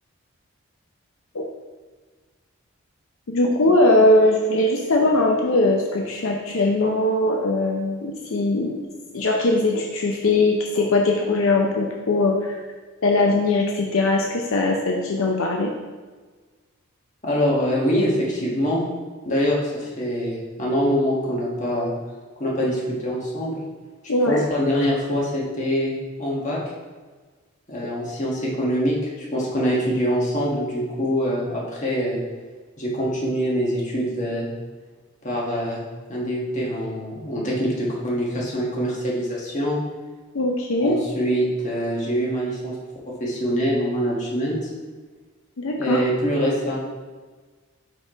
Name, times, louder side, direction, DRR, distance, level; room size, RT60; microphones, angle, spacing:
voice 1, 3.3-8.8 9.1-12.6 13.0-15.7 24.1-24.4 40.3-41.0 45.6-46.0, left 2 dB, 75° left, 0 dB, 0.6 m, -20 dB
voice 2, 17.2-18.8 19.2-21.9 22.4-23.5 24.3-25.9 26.2-26.6 27.7-29.0 29.3-32.2 32.8-34.5 35.2-35.8 36.1-39.8 40.8-42.8 43.1-44.6 45.8-46.8, equal, 35° left, -4 dB, 1.4 m, -24 dB
4.8 x 4.3 x 4.9 m, 1.4 s
head